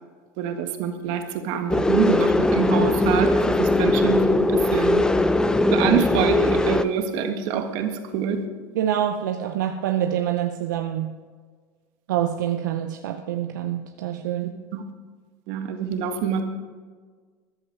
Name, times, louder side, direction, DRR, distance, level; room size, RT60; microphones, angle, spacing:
voice 1, 0.4-5.1 5.7-8.4 14.7-14.8 15.5-16.4, right 7 dB, 65° right, 6 dB, 1.7 m, -25 dB
sound 1, 1.7-6.8, left 2 dB, 5° left, 0.6 m, -20 dB
voice 2, 8.7-11.2 12.1-14.6, right 10 dB, 90° right, 6 dB, 0.7 m, -26 dB
14.0 x 11.0 x 4.8 m, 1.6 s
supercardioid pair, 100°, 10 cm